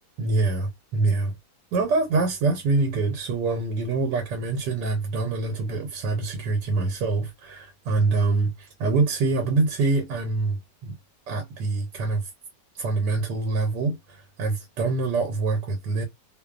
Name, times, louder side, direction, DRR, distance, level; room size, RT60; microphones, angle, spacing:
voice 1, 0.2-1.3 1.7-10.9 11.3-12.3 12.8-16.0, right 3 dB, 85° right, 1.3 m, -25 dB
2.9 x 2.0 x 2.4 m
omnidirectional pair, 1.8 m